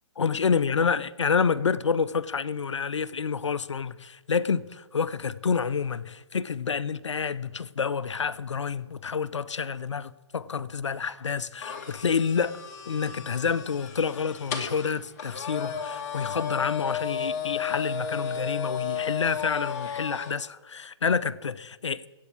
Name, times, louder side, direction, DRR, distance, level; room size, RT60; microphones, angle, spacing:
voice 1, 0.2-22.0, left 6 dB, 75° left, 0.7 m, -28 dB
sound 1, 11.6-20.4, left 6 dB, 35° left, 2.0 m, -34 dB
13.0 x 8.4 x 8.5 m
figure-of-eight pair, 140°, 15 cm